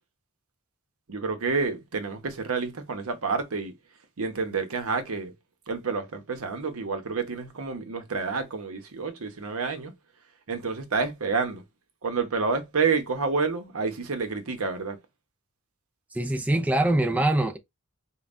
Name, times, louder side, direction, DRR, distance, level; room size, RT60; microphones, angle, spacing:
voice 1, 1.1-3.7 4.2-5.3 5.7-9.9 10.5-11.6 12.0-15.0, right 4 dB, 70° right, 0.8 m, -29 dB
voice 2, 16.1-17.6, right 1 dB, 5° right, 0.4 m, -23 dB
5.3 x 2.3 x 2.5 m
head